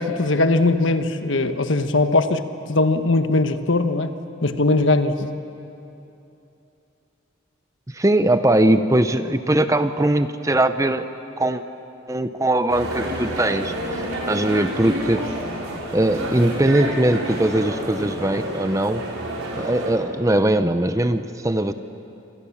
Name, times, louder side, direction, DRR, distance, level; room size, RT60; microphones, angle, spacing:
voice 1, 0.0-4.1 4.4-5.3, left 2 dB, 65° left, 9 dB, 1.2 m, -20 dB
voice 2, 7.9-11.1 11.4-11.6 12.1-15.3 15.9-19.0 19.6-21.7, right 1 dB, 15° right, 10 dB, 0.7 m, -20 dB
sound 1, 12.7-19.9, right 1 dB, 85° right, 5.2 m, -29 dB
26.5 x 26.0 x 7.2 m, 2.9 s
head